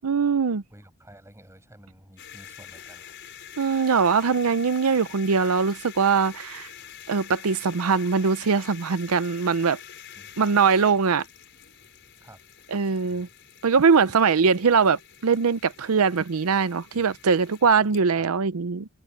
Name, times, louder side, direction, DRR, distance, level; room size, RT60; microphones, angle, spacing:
voice 1, 0.0-0.6 3.6-6.7 7.1-9.8 10.4-11.2 12.7-13.3 13.6-18.9, right 5 dB, 90° right, 0.6 m, -22 dB
voice 2, 0.7-3.2 10.2-10.3 12.2-12.4 12.7-12.8 13.1-13.3 16.9-17.1 17.8-17.9 18.2-18.3, right 1 dB, 15° right, 6.4 m, -51 dB
sound 1, 2.2-18.0, left 9 dB, 55° left, 5.2 m, -46 dB
open air
head